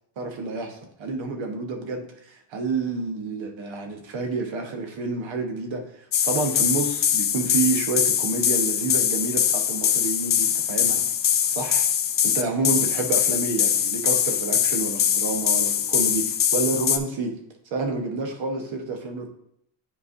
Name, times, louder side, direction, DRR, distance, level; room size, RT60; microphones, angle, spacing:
voice 1, 0.2-11.0 11.5-11.9 12.2-17.3 17.7-19.3, right 3 dB, 85° right, 3 dB, 1.2 m, -29 dB
sound 1, 6.1-17.0, left 9 dB, 50° left, 0.6 m, -23 dB
9.7 x 4.6 x 2.6 m, 0.71 s
cardioid pair, 115°, 45 cm